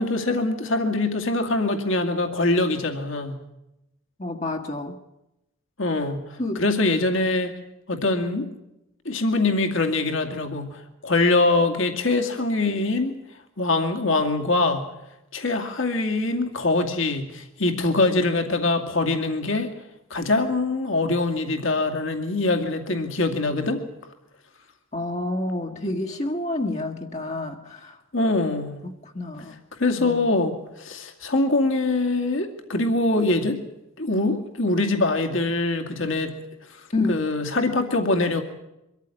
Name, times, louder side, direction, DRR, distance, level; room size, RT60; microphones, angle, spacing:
voice 1, 0.0-3.3 5.8-6.3 6.6-7.5 7.9-8.5 9.0-13.1 13.6-14.9 15.3-19.7 20.1-23.8 28.1-28.8 29.8-33.6 34.0-36.3 37.1-38.4, left 2 dB, 65° left, 2.3 m, -23 dB
voice 2, 4.2-5.0 6.4-6.6 24.9-28.0 28.8-29.5 30.0-30.2 36.9-37.4, left 2 dB, 30° left, 1.5 m, -29 dB
24.0 x 14.0 x 10.0 m
head